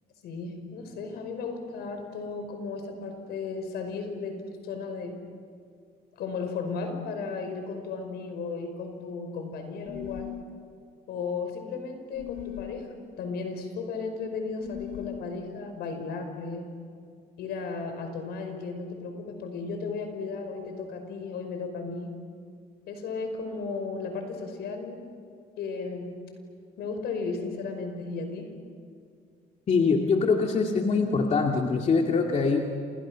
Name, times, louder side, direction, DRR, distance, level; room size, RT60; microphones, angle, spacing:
voice 1, 0.2-5.2 6.1-10.3 11.1-16.7 17.4-22.2 22.9-25.1 25.6-26.2 26.8-28.5, left 4 dB, 75° left, 6 dB, 5.5 m, -35 dB
sound 1, 9.8-10.5 12.1-12.7 14.6-15.3, left 11 dB, 60° left, 1.9 m, -38 dB
voice 2, 29.7-32.6, left 4 dB, 40° left, 1 dB, 2.4 m, -23 dB
29.5 x 28.5 x 6.3 m, 2.2 s
cardioid pair, 110°, 17 cm